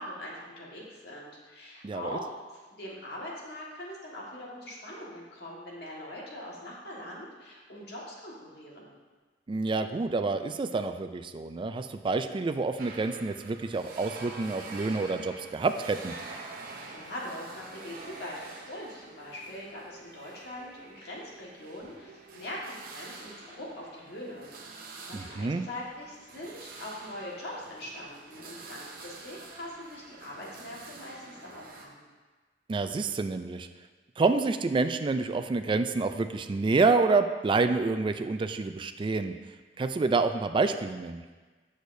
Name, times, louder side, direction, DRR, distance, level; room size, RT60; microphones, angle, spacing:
voice 1, 0.0-8.9 16.8-32.0, left 1 dB, 65° left, -4 dB, 1.6 m, -42 dB
voice 2, 1.8-2.2 9.5-16.2 25.1-25.6 32.7-33.7 34.2-39.3 39.8-41.2, right 3 dB, 30° right, 8 dB, 0.3 m, -28 dB
sound 1, 12.8-31.9, right 3 dB, 55° right, 0.8 m, -47 dB
8.3 x 6.4 x 2.6 m, 1.3 s
head